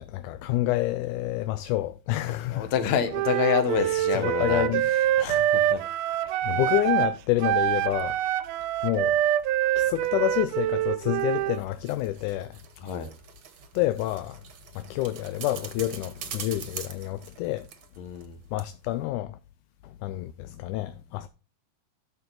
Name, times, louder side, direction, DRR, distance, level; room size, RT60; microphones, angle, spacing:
voice 1, 0.0-2.7 3.8-4.9 6.4-8.2 8.8-9.2 9.8-12.6 13.7-14.4 14.8-17.7 18.5-19.4 19.8-21.3, left 15 dB, 80° left, 2.0 m, -28 dB
voice 2, 2.5-4.7 5.2-5.8 12.8-13.1 18.0-18.4, left 8 dB, 65° left, 2.3 m, -28 dB
Wind instrument woodwind instrument, 3.1-7.2 7.4-11.6, right 12 dB, 85° right, 1.4 m, -25 dB
sound 1, 11.3-18.3 18.6-18.7, right 8 dB, 60° right, 1.4 m, -43 dB
12.5 x 5.8 x 3.9 m
omnidirectional pair, 3.7 m